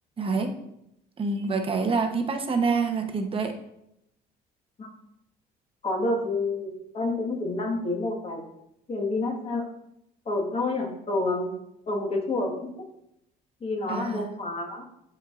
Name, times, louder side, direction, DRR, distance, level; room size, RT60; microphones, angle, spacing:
voice 1, 0.2-0.5 1.2-3.5 13.9-14.3, right 4 dB, 35° right, 5 dB, 0.9 m, -26 dB
voice 2, 5.8-8.5 8.9-9.6 10.2-11.5 11.9-12.7 13.6-14.8, left 2 dB, 35° left, 1 dB, 1.5 m, -28 dB
10.5 x 4.5 x 2.5 m, 0.80 s
cardioid pair, 110°, 17 cm